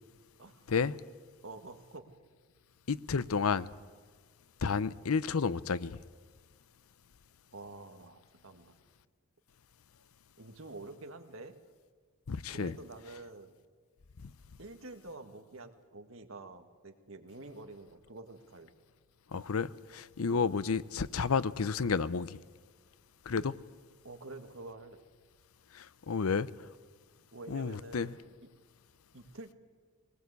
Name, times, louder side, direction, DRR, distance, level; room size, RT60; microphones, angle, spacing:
voice 1, 1.4-2.1 7.5-8.8 10.4-11.6 12.5-13.5 14.6-18.7 20.3-20.4 24.0-25.0 27.3-28.1 28.4-28.5 29.1-29.5, right 2 dB, 65° right, 1.8 m, -48 dB
voice 2, 2.9-3.7 4.6-6.0 12.3-12.7 19.3-22.4 23.3-23.5 25.7-26.5 27.5-28.1, left 5 dB, 80° left, 0.6 m, -31 dB
22.0 x 20.0 x 8.2 m
head